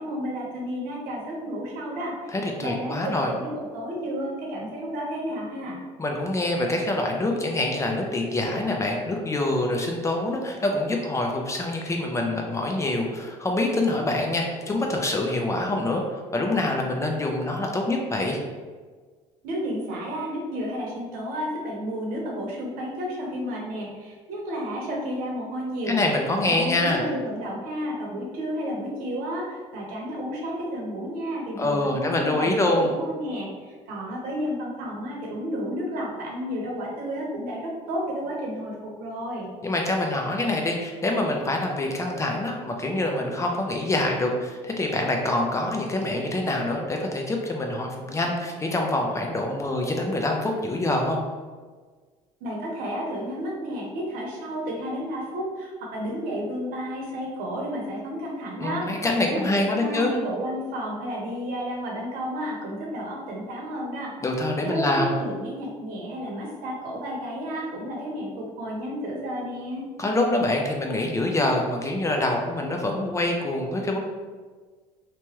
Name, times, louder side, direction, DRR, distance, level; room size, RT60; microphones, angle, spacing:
voice 1, 0.0-2.4 2.6-5.8 19.4-25.9 26.4-39.5 52.4-64.1 64.6-69.9, equal, 70° right, -2 dB, 0.9 m, -32 dB
voice 2, 2.3-3.3 6.0-18.4 25.9-27.0 31.6-32.9 39.6-51.2 58.6-60.2 64.2-65.1 70.0-74.0, left 2 dB, 20° left, 1 dB, 0.4 m, -25 dB
2.9 x 2.3 x 2.9 m, 1.5 s
supercardioid pair, 95°, 15 cm